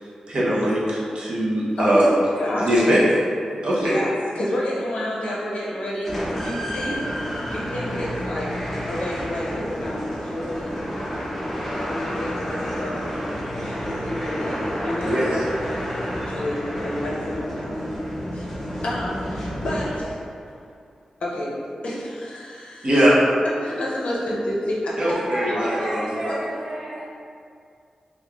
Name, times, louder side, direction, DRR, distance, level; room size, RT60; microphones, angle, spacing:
voice 1, 0.3-2.1 2.6-3.0 3.6-4.0 15.0-15.4 22.8-23.2 25.0-26.3, equal, 50° right, -7 dB, 0.6 m, -21 dB
voice 2, 1.8-2.1 2.4-2.9 3.8-4.1 4.3-6.2 6.4-7.1 7.5-8.6 8.9-10.7 11.8-13.1 13.5-15.4 16.1-17.9 18.3-18.5 18.8-20.2 21.2-21.5 21.8-22.9 23.6-25.2 25.5-26.4, left 1 dB, 75° left, -6 dB, 0.5 m, -29 dB
sound 1, 6.0-20.3, equal, 5° left, 0.6 m, -30 dB
voice 3, 24.9-27.1, right 1 dB, 85° right, -9 dB, 0.7 m, -32 dB
3.0 x 2.3 x 2.2 m, 2.3 s
wide cardioid pair, 150°, 2 cm